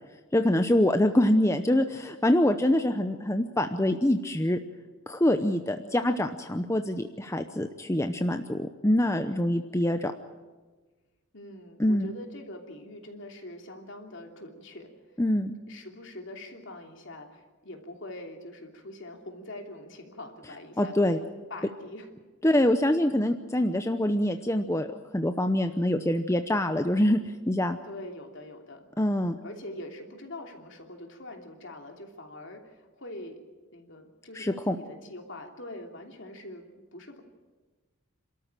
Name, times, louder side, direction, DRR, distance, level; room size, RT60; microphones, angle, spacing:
voice 1, 0.3-4.6 5.1-10.1 11.8-12.1 15.2-15.6 20.8-21.2 22.4-24.9 25.1-27.2 27.5-27.8 29.0-29.3 34.3-34.8, left 1 dB, 15° left, 7 dB, 0.7 m, -25 dB
voice 2, 11.3-14.9 15.7-22.1 22.5-22.6 27.8-28.9 29.4-33.4 33.7-37.2, left 1 dB, 60° left, 3 dB, 3.0 m, -43 dB
27.5 x 13.5 x 9.0 m, 1.3 s
head